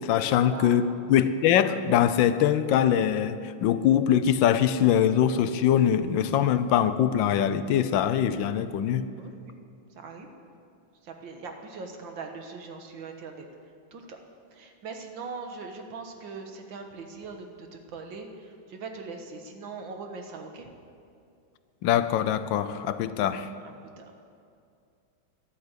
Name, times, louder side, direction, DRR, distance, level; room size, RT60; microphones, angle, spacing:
voice 1, 0.0-9.1 21.8-23.5, left 9 dB, 80° left, 12 dB, 1.4 m, -23 dB
voice 2, 0.5-0.8 9.2-9.5 10.0-10.3 11.0-13.5 13.9-14.2 14.5-20.7 23.7-24.1, right 4 dB, 80° right, 4 dB, 2.0 m, -41 dB
13.5 x 10.5 x 8.2 m, 2.4 s
omnidirectional pair, 2.1 m